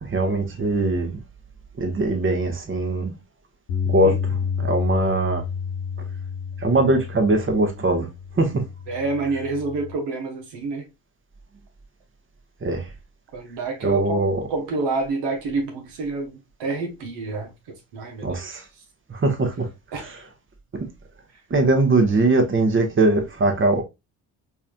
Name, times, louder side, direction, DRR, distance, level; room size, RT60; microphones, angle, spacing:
voice 1, 0.0-1.2 1.8-3.2 3.9-4.1 4.6-5.4 6.6-8.1 8.3-8.7 12.6-12.9 13.8-14.5 18.2-18.6 19.1-20.3 21.5-23.8, right 2 dB, 25° right, 1.2 m, -21 dB
Bass guitar, 3.7-9.9, left 6 dB, 70° left, 1.0 m, -29 dB
voice 2, 8.9-10.9 13.3-14.2 14.5-17.5 17.9-18.3 19.9-20.0, right 3 dB, 65° right, 1.2 m, -28 dB
4.6 x 2.9 x 2.2 m
hypercardioid pair, 50°, 44 cm